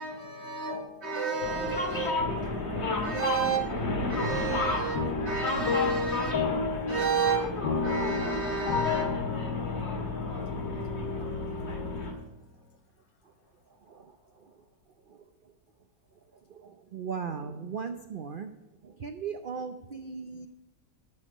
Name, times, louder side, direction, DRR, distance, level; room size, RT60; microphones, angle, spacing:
voice 1, 0.0-2.3 3.0-6.4 6.9-9.7, right 5 dB, 40° right, 1.9 m, -32 dB
sound 1, 1.4-12.1, left 2 dB, 40° left, 2.0 m, -32 dB
voice 2, 2.3-2.8 3.9-4.4 4.9-7.1 7.6-12.4, left 5 dB, 80° left, 1.7 m, -33 dB
voice 3, 16.5-18.5 18.8-20.5, right 6 dB, 65° right, 0.5 m, -38 dB
12.0 x 6.5 x 6.0 m
omnidirectional pair, 1.9 m